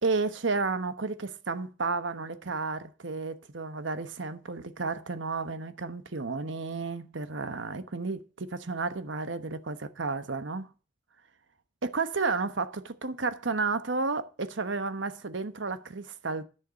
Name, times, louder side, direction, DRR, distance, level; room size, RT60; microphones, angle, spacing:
voice 1, 0.0-10.7 11.8-16.4, right 3 dB, 80° right, 1.1 m, -32 dB
10.0 x 6.6 x 7.6 m
head